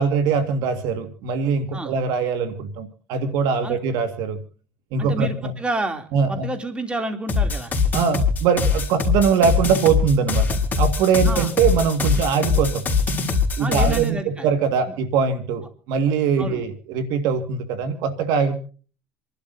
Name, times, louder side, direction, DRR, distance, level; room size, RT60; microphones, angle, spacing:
voice 1, 0.0-4.4 4.9-5.5 6.1-6.5 7.9-12.8 13.6-18.6, right 6 dB, 70° right, 8 dB, 1.8 m, -22 dB
voice 2, 5.0-7.7 11.2-11.5 13.6-14.5 16.4-16.6, right 2 dB, 15° right, 5 dB, 2.8 m, -29 dB
sound 1, 7.3-14.1, left 5 dB, 25° left, 4.0 m, -22 dB
28.0 x 12.0 x 2.7 m, 0.40 s
supercardioid pair, 105°, 7 cm